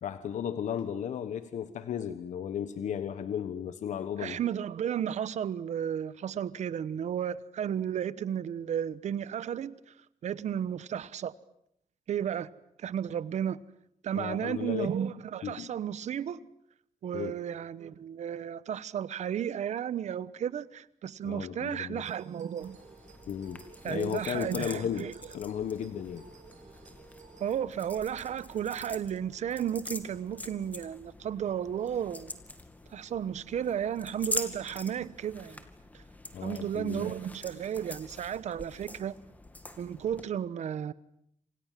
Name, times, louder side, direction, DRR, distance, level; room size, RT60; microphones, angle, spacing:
voice 1, 0.0-4.4 14.1-14.9 15.4-15.7 17.1-17.3 21.2-22.0 23.3-25.1 25.3-26.2 36.3-37.1, left 9 dB, 85° left, 1.3 m, -35 dB
voice 2, 4.2-9.7 10.2-11.3 12.1-12.5 12.8-13.6 14.0-16.4 17.0-22.8 23.8-25.1 27.4-32.3 32.9-35.6 35.9-36.0 36.4-39.1 39.8-40.9, right 9 dB, 70° right, 1.1 m, -33 dB
sound 1, 22.1-27.5, right 6 dB, 90° right, 7.7 m, -55 dB
sound 2, 22.6-40.2, left 2 dB, 15° left, 2.3 m, -44 dB
28.5 x 27.0 x 7.6 m
wide cardioid pair, 160°, 12 cm